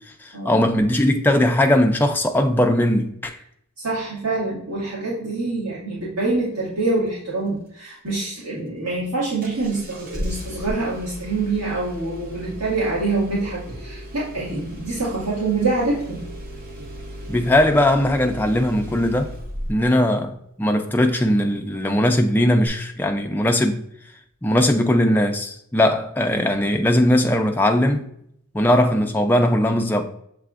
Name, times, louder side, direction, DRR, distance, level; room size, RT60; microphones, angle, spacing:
voice 1, 0.2-3.4 17.3-19.3 19.7-23.8 24.4-28.1 28.5-30.0, left 1 dB, 10° left, 0.3 m, -19 dB
voice 2, 3.8-16.2, right 3 dB, 80° right, 1.8 m, -25 dB
Engine starting, 9.4-20.0 22.7-22.8, equal, 40° right, 0.7 m, -36 dB
6.6 x 3.4 x 2.4 m
head